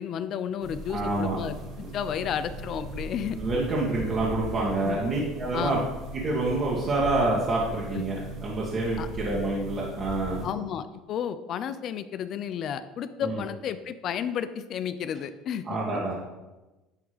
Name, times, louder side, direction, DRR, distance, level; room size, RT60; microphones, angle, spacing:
voice 1, 0.0-3.4 4.8-5.0 5.5-5.9 7.9-8.0 9.0-9.1 10.4-15.6, left 8 dB, 50° left, 12 dB, 0.5 m, -32 dB
sound 1, 0.6-10.5, right 1 dB, 60° right, 2.2 m, -39 dB
voice 2, 0.9-1.4 1.8-1.9 3.3-5.8 6.1-10.5 13.2-13.4 15.7-16.2, right 2 dB, 35° right, -5 dB, 1.7 m, -27 dB
10.5 x 3.5 x 5.0 m, 1.1 s
supercardioid pair, 100°, 0 cm